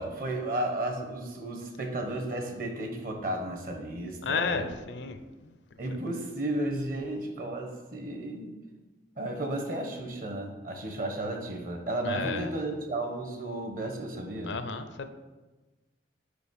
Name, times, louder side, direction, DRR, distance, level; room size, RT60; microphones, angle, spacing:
voice 1, 0.0-4.7 5.8-8.5 9.2-14.6, right 1 dB, 50° right, 3 dB, 1.1 m, -33 dB
voice 2, 4.2-5.6 12.0-12.5 14.4-15.1, left 5 dB, 75° left, 10 dB, 0.6 m, -33 dB
5.3 x 5.1 x 6.4 m, 1.2 s
head